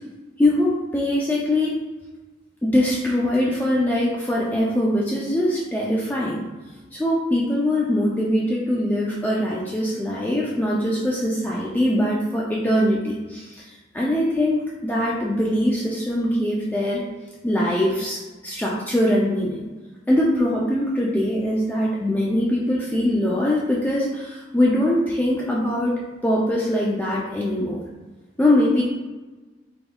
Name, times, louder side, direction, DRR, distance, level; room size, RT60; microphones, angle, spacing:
voice 1, 0.4-1.8 2.6-17.0 17.4-19.7 20.1-27.8 28.4-28.8, left 1 dB, 10° left, -5 dB, 0.3 m, -22 dB
3.5 x 3.4 x 2.2 m, 1.2 s
head